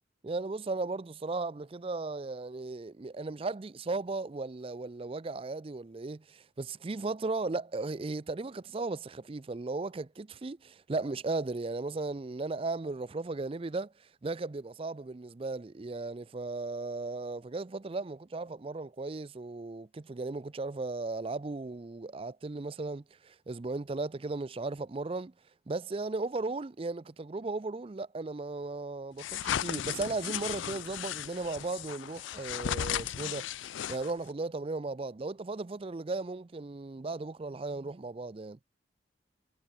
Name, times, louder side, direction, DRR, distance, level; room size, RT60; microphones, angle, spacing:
voice 1, 0.2-25.3 25.7-38.6, right 3 dB, 30° right, 0.4 m, -36 dB
sound 1, 29.2-34.3, left 10 dB, 80° left, 0.4 m, -35 dB
head